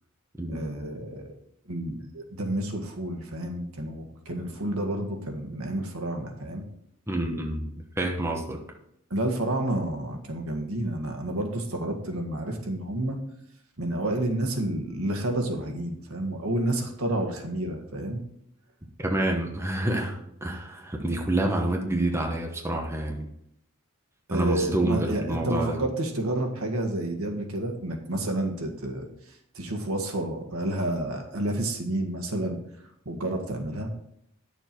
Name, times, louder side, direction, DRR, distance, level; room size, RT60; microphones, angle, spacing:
voice 1, 0.5-1.3 1.7-6.6 9.1-13.2 13.8-18.2 24.3-32.6 33.0-33.9, right 1 dB, 75° right, 3 dB, 1.7 m, -30 dB
voice 2, 7.1-7.7 8.0-8.6 19.0-23.3 24.3-25.8, right 1 dB, 10° right, 0 dB, 1.1 m, -28 dB
10.0 x 6.8 x 4.5 m, 0.75 s
head